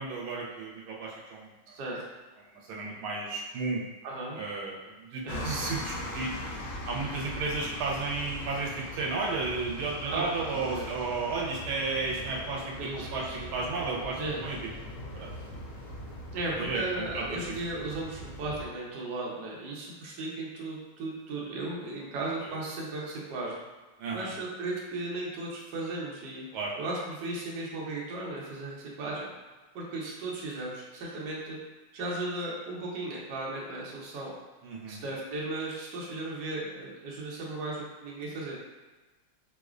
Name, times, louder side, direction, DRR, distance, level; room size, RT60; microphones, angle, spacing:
voice 1, 0.0-1.5 2.5-3.8 4.4-4.8 5.1-6.3 6.9-14.6 15.1-15.3 16.6-17.3 24.0-24.3 26.5-26.7 34.6-35.0, right 3 dB, 85° right, -3 dB, 1.5 m, -33 dB
voice 2, 1.7-2.0 4.0-4.4 5.2-5.7 10.1-10.9 12.8-13.5 14.2-14.6 16.3-23.6 24.1-26.4 26.8-29.3 29.7-31.6 31.9-34.3 34.9-38.7, right 2 dB, 65° right, -4 dB, 1.3 m, -36 dB
sound 1, 5.3-18.7, left 1 dB, 70° left, 1.1 m, -41 dB
4.8 x 2.1 x 2.4 m, 1.2 s
omnidirectional pair, 2.3 m